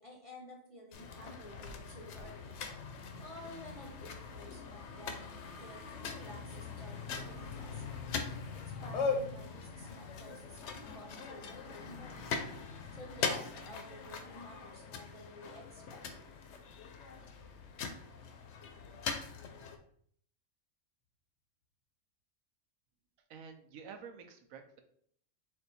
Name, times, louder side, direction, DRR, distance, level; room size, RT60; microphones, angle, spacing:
voice 1, 0.0-2.6 3.2-7.8 8.5-12.4 12.9-16.0, left 1 dB, 30° left, -2 dB, 0.7 m, -52 dB
sound 1, 0.9-19.8, left 5 dB, 65° left, 0.8 m, -41 dB
voice 2, 23.3-24.8, right 6 dB, 80° right, 6 dB, 1.0 m, -49 dB
4.3 x 2.3 x 4.0 m, 0.63 s
omnidirectional pair, 1.4 m